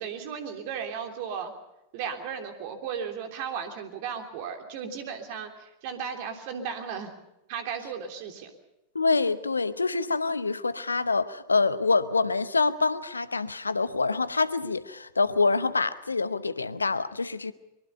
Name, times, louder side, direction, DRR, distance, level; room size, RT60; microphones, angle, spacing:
voice 1, 0.0-1.5 1.9-7.1 7.5-8.5, right 7 dB, 50° right, 3.2 m, -35 dB
voice 2, 8.9-17.5, left 4 dB, 80° left, 0.9 m, -26 dB
23.5 x 23.5 x 5.6 m
figure-of-eight pair, 90°, 0 cm